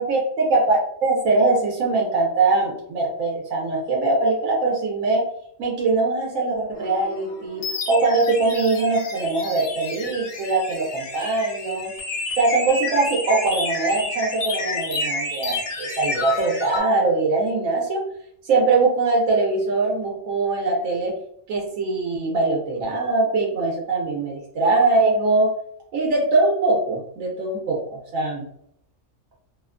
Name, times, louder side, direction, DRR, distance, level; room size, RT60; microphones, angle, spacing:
voice 1, 0.0-5.3 5.6-11.9 12.4-18.0 18.4-21.1 21.5-25.5 25.9-28.5, right 3 dB, 85° right, -2 dB, 1.0 m, -22 dB
sound 1, 6.7-16.8, left 3 dB, 65° left, 1.0 m, -30 dB
2.6 x 2.1 x 2.3 m, 0.69 s
omnidirectional pair, 1.3 m